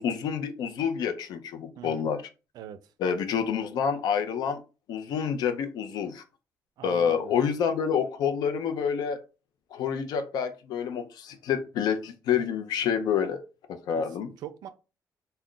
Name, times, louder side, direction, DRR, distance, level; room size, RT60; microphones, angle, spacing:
voice 1, 0.0-2.2 3.0-4.6 4.9-6.2 6.8-9.2 9.7-13.4 13.7-14.3, left 7 dB, 85° left, 0.5 m, -28 dB
voice 2, 1.8-2.1 2.5-2.9 6.8-7.3 14.0-14.1 14.4-14.7, right 10 dB, 75° right, 0.4 m, -42 dB
2.3 x 2.1 x 3.7 m
cardioid pair, 175°, 7 cm